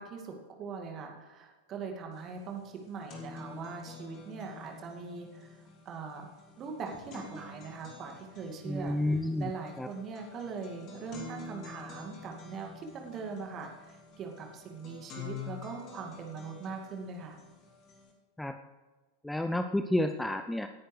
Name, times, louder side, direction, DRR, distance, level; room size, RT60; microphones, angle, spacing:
voice 1, 0.0-6.3 6.6-17.4, right 5 dB, 30° right, 2 dB, 2.1 m, -41 dB
sound 1, 2.2-2.3 2.6-18.1, left 5 dB, 35° left, 2.8 m, -48 dB
voice 2, 8.7-9.5 9.8-9.9 18.4-18.6 19.2-20.7, left 1 dB, 5° left, 8 dB, 0.5 m, -30 dB
18.0 x 10.0 x 3.3 m, 1.3 s
figure-of-eight pair, 90°, 0 cm